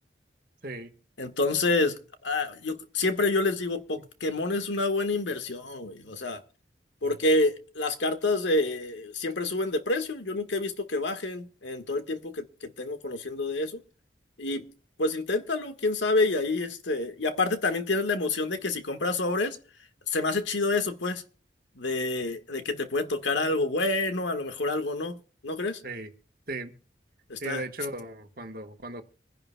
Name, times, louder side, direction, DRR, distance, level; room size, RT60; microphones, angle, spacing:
voice 1, 1.2-6.4 7.0-13.8 14.4-14.6 15.0-19.6 20.1-21.2 21.7-25.8 27.3-27.6, left 2 dB, 80° left, 1.5 m, -28 dB
voice 2, 27.4-29.0, right 2 dB, 50° right, 1.3 m, -36 dB
26.0 x 10.5 x 2.2 m
head